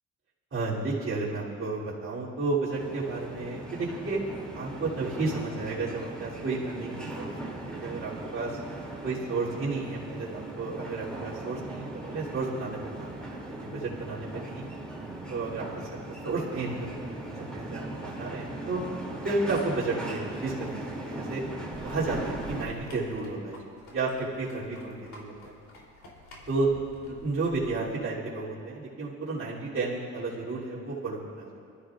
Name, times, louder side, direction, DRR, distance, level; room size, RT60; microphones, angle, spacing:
voice 1, 0.5-4.2 4.5-7.3 7.6-8.6 9.0-14.6 15.3-15.7 16.1-18.8 19.2-21.4 21.8-24.1 24.4-25.6 26.5-26.7 27.0-31.6, right 3 dB, 45° right, -9 dB, 3.3 m, -32 dB
sound 1, 2.7-22.6, right 2 dB, 5° left, 2.8 m, -39 dB
sound 2, 21.7-27.7, left 2 dB, 65° left, 3.5 m, -47 dB
23.5 x 13.0 x 2.5 m, 2.5 s
cardioid pair, 90°, 30 cm